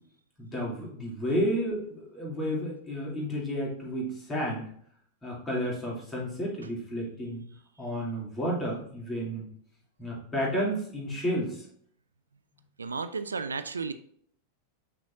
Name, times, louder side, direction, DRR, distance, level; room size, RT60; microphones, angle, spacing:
voice 1, 0.4-4.7 5.2-7.4 7.8-9.5 10.0-11.6, equal, 15° left, -4 dB, 2.7 m, -31 dB
voice 2, 12.8-13.9, right 4 dB, 75° right, 11 dB, 0.4 m, -33 dB
6.9 x 6.1 x 2.6 m, 0.65 s
figure-of-eight pair, 90°, 0 cm